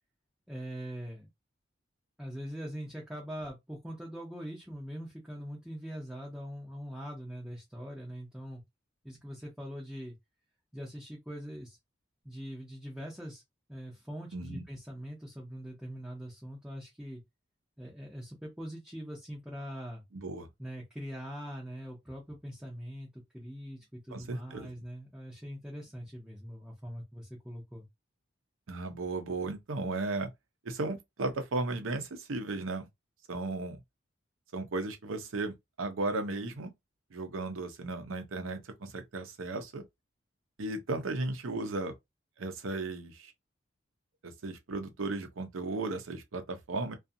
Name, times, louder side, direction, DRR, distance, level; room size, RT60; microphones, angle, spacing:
voice 1, 0.5-1.3 2.2-8.6 9.0-10.2 10.7-11.8 12.2-13.4 13.7-17.2 17.8-20.0 20.6-27.9, equal, 5° right, 0.6 m, -42 dB
voice 2, 14.3-14.6 20.1-20.5 24.1-24.7 28.7-30.3 30.6-32.9 33.3-33.8 34.5-36.7 37.1-39.8 40.6-41.9 42.4-43.3 44.2-47.0, right 2 dB, 85° right, 0.6 m, -35 dB
2.5 x 2.4 x 2.6 m
head